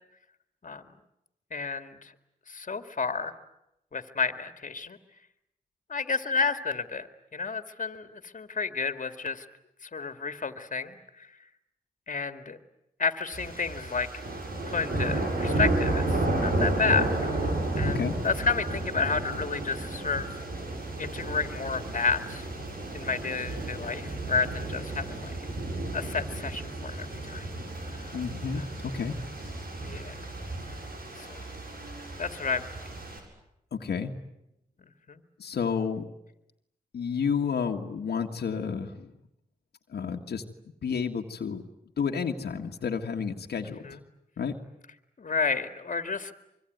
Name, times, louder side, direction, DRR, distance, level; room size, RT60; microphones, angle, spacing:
voice 1, 1.5-2.1 2.5-3.3 3.9-5.0 5.9-9.4 9.8-11.3 12.1-12.6 13.0-14.2 14.7-17.5 17.7-20.3 21.0-22.5 22.9-25.3 25.9-27.5 27.8-28.2 28.5-28.7 29.8-30.1 31.2-31.5 32.2-32.7 32.9-33.0 34.8-35.2 43.8-44.0 45.2-46.3, left 5 dB, 55° left, 8 dB, 2.1 m, -31 dB
sound 1, 13.3-33.2, right 2 dB, 70° right, 7.3 m, -32 dB
voice 2, 28.1-29.2 33.7-34.2 35.4-36.0 36.9-39.1 39.9-40.4 40.8-41.6 42.0-43.8 44.4-44.5, left 6 dB, 85° left, 2 dB, 1.7 m, -30 dB
25.0 x 24.0 x 9.4 m, 0.85 s
cardioid pair, 60°, 16 cm